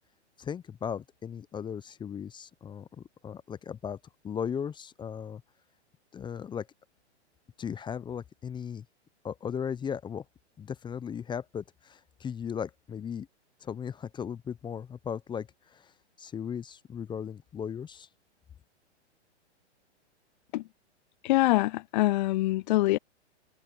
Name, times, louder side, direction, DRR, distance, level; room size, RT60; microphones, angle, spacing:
voice 1, 0.4-5.4 6.1-6.7 7.6-8.9 9.2-10.2 10.6-13.3 13.6-15.9 16.2-18.1, left 7 dB, 15° left, 0.8 m, -37 dB
voice 2, 21.2-23.0, left 18 dB, 40° left, 0.5 m, -24 dB
hypercardioid pair, 120°, 35 cm